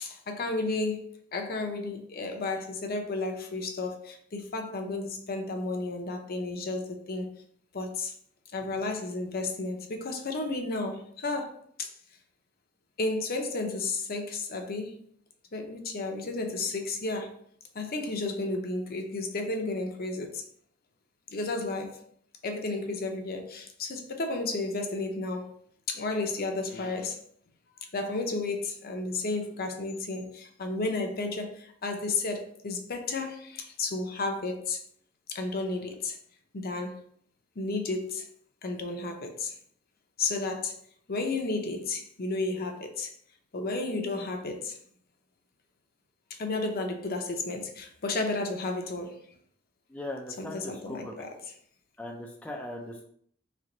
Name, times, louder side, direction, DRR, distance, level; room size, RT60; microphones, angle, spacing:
voice 1, 0.0-7.3 7.7-8.1 8.5-11.9 13.0-15.0 15.5-17.3 17.7-20.4 21.3-22.0 22.4-25.6 25.9-27.2 27.9-34.8 35.3-36.2 36.5-37.0 37.6-38.3 38.6-39.6 40.2-40.8 41.1-43.1 43.5-44.8 46.3-49.2 50.4-51.5, left 3 dB, 50° left, 4 dB, 0.7 m, -32 dB
voice 2, 49.9-51.1 52.0-53.0, left 1 dB, 5° left, -1 dB, 0.4 m, -39 dB
3.3 x 3.3 x 3.8 m, 0.62 s
head